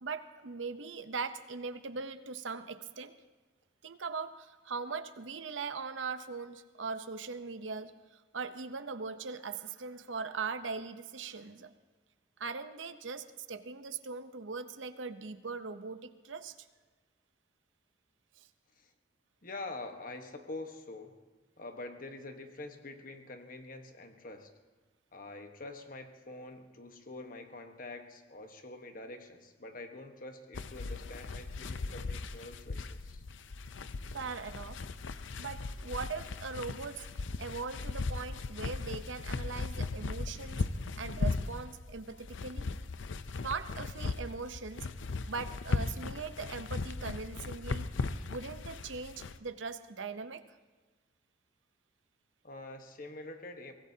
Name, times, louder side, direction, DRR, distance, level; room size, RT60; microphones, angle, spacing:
voice 1, 0.0-3.1 3.8-7.9 8.3-11.7 12.4-16.6 18.4-18.5 34.1-34.8 35.4-40.6 41.0-42.7 43.4-44.9 45.3-47.9 48.3-50.4, right 4 dB, 85° right, 11 dB, 0.8 m, -40 dB
voice 2, 19.4-21.2 21.6-24.5 25.1-33.2 52.4-53.7, left 2 dB, 45° left, 6 dB, 1.3 m, -46 dB
sound 1, 30.5-49.4, left 3 dB, 85° left, 0.6 m, -38 dB
23.5 x 18.5 x 2.8 m, 1.3 s
head